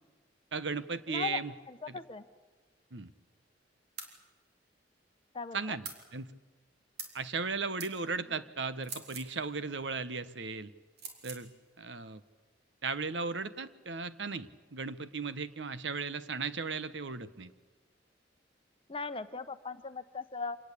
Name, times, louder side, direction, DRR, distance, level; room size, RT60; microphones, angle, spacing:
voice 1, 0.5-1.5 1.9-2.0 2.9-3.1 5.5-6.3 7.1-10.7 11.2-11.5 11.8-12.2 12.8-17.5, right 4 dB, 85° right, 13 dB, 1.1 m, -36 dB
voice 2, 1.1-1.4 1.7-2.2 5.3-5.8 8.3-8.4 18.9-20.6, left 4 dB, 30° left, 10 dB, 1.0 m, -38 dB
sound 1, 4.0-4.2 5.8-6.0 7.0-7.2 7.8-7.9 8.8-9.3 11.0-11.4, right 5 dB, 60° right, 3.7 m, -43 dB
26.0 x 19.5 x 8.5 m, 1.3 s
head